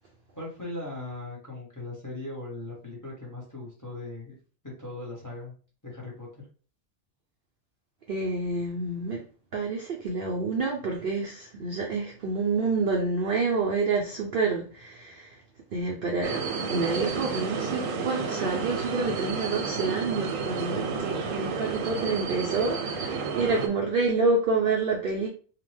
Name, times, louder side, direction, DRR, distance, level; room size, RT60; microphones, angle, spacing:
voice 1, 0.3-4.3 4.6-5.5 5.8-6.3 23.4-23.7, left 2 dB, 15° left, 0.8 m, -39 dB
voice 2, 8.1-9.2 9.5-15.4 15.7-25.3, right 3 dB, 60° right, 0.6 m, -28 dB
sound 1, 16.2-23.7, right 5 dB, 85° right, 1.0 m, -31 dB
2.8 x 2.1 x 3.2 m
omnidirectional pair, 1.3 m